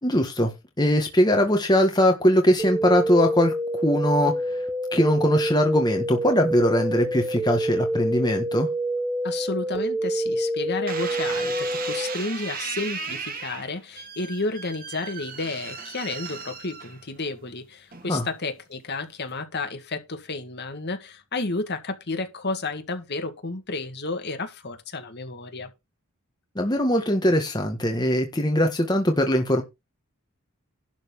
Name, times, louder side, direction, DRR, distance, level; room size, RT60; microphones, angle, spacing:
voice 1, 0.0-0.5 0.8-4.6 4.9-8.7 18.1-18.3 26.5-29.6, equal, 20° left, 1.5 m, -21 dB
sound 1, 2.6-12.1, right 1 dB, 15° right, 2.0 m, -27 dB
voice 2, 9.2-25.7, left 3 dB, 50° left, 2.0 m, -31 dB
sound 2, 10.9-17.3 17.9-18.4, right 5 dB, 40° right, 2.1 m, -36 dB
11.5 x 4.2 x 7.1 m
head